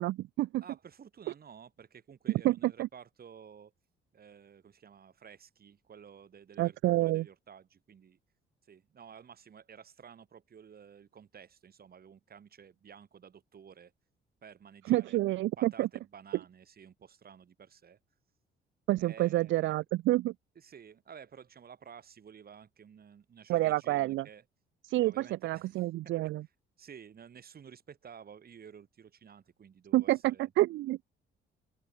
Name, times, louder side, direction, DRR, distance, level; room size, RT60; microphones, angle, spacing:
voice 1, 0.0-0.6 2.4-2.9 6.6-7.3 14.9-15.9 18.9-20.3 23.5-24.3 24.9-26.4 29.9-31.0, right 16 dB, 75° right, 0.4 m, -28 dB
voice 2, 0.6-3.7 4.1-8.2 8.6-13.9 14.4-15.2 15.6-18.0 19.0-19.7 20.5-24.4 25.0-26.1 26.8-30.5, right 7 dB, 50° right, 4.6 m, -53 dB
cardioid pair, 90°, 20 cm